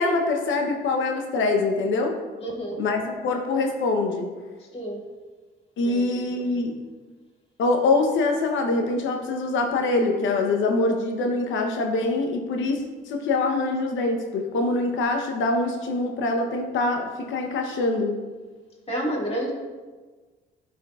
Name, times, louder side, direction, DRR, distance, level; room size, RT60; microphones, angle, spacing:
voice 1, 0.0-2.1 2.8-4.3 5.8-6.8 7.6-18.2, left 3 dB, 75° left, 3 dB, 0.9 m, -24 dB
voice 2, 2.4-2.8 4.7-5.0 5.8-6.3 18.9-19.5, right 1 dB, 30° left, -2 dB, 1.9 m, -30 dB
11.0 x 4.4 x 2.4 m, 1.4 s
cardioid pair, 90°, 20 cm